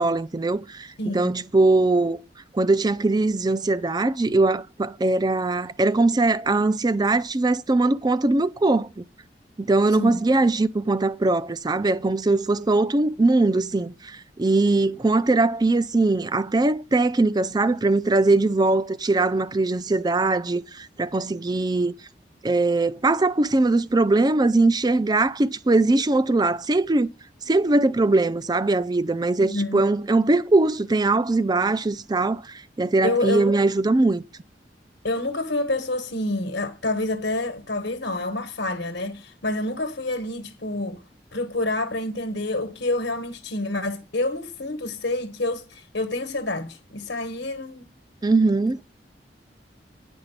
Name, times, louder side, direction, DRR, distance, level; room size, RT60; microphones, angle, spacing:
voice 1, 0.0-0.9 1.1-2.2 2.5-9.0 9.6-21.9 22.4-27.1 27.5-34.2 48.2-48.8, right 2 dB, 25° right, 0.5 m, -21 dB
voice 2, 1.0-1.4 10.0-10.2 29.4-29.8 33.0-33.6 35.0-41.0 41.3-47.9, left 2 dB, 75° left, 1.2 m, -28 dB
9.8 x 5.4 x 8.0 m
head